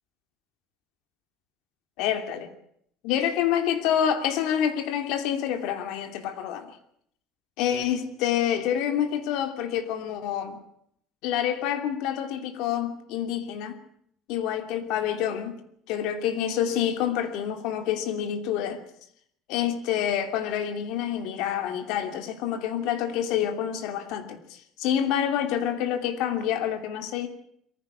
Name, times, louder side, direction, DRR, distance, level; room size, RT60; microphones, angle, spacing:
voice 1, 2.0-2.5 3.0-6.7 7.6-10.6 11.2-13.8 14.3-15.6 15.9-18.8 19.5-27.3, left 9 dB, 65° left, 7 dB, 2.9 m, -27 dB
22.5 x 15.5 x 9.8 m, 0.70 s
cardioid pair, 175°, 0 cm